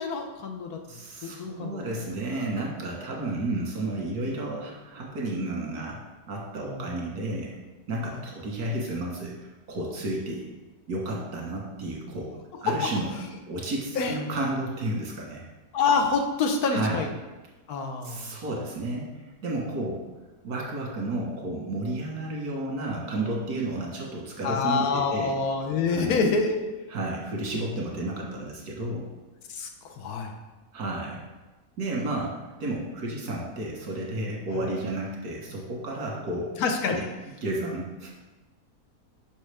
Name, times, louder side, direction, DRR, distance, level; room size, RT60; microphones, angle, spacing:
voice 1, 0.0-1.8 6.7-6.9 8.1-8.2 13.9-14.1 15.7-17.1 17.7-18.3 24.4-26.7 29.5-30.3 34.5-34.6 36.6-37.0, left 4 dB, 80° left, 4 dB, 1.3 m, -27 dB
voice 2, 0.9-6.0 6.3-7.6 7.9-9.3 9.7-10.5 10.9-12.3 12.6-13.1 13.5-15.5 16.7-17.0 18.0-19.1 19.4-20.0 20.4-25.3 25.9-26.2 26.9-29.1 30.7-31.2 31.8-32.3 32.6-36.5 36.9-37.0 37.4-38.1, right 2 dB, 80° right, -2 dB, 1.9 m, -32 dB
6.3 x 5.8 x 3.4 m, 1.2 s
omnidirectional pair, 1.6 m